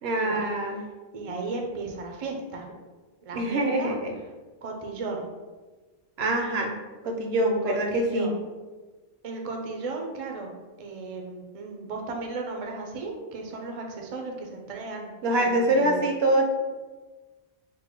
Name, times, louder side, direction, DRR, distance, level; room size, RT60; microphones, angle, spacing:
voice 1, 0.0-0.8 3.3-4.1 6.2-6.7 7.0-8.3 15.2-16.4, right 1 dB, 70° right, 3 dB, 0.8 m, -24 dB
voice 2, 1.1-2.7 3.2-4.0 4.6-5.3 7.6-8.3 9.2-10.5 10.8-16.0, right 3 dB, 45° right, 2 dB, 0.5 m, -35 dB
3.8 x 2.2 x 4.3 m, 1.3 s
omnidirectional pair, 1.1 m